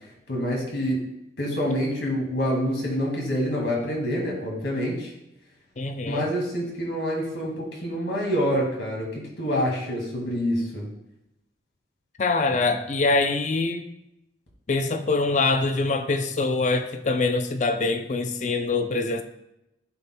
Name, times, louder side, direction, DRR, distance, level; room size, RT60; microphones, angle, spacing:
voice 1, 0.3-1.0 1.4-5.1 6.1-10.9, equal, 75° left, -2 dB, 2.1 m, -27 dB
voice 2, 5.8-6.2 12.2-13.9 14.7-19.2, left 3 dB, 40° left, 8 dB, 0.5 m, -24 dB
12.0 x 4.2 x 2.2 m, 0.86 s
head